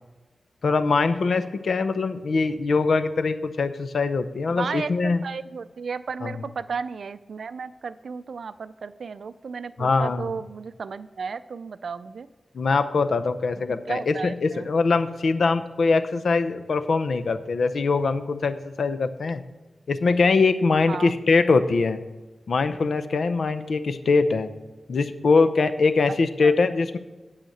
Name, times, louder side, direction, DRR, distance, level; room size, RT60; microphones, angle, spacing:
voice 1, 0.6-5.2 6.2-6.3 9.8-10.2 12.5-19.4 19.9-22.0 22.5-24.5 24.9-27.0, left 4 dB, 70° left, 11 dB, 0.6 m, -22 dB
voice 2, 4.5-12.3 13.5-14.7 20.8-21.2 26.1-26.5, right 5 dB, 70° right, 14 dB, 0.4 m, -34 dB
9.0 x 5.7 x 7.9 m, 1.2 s
wide cardioid pair, 140°, 0 cm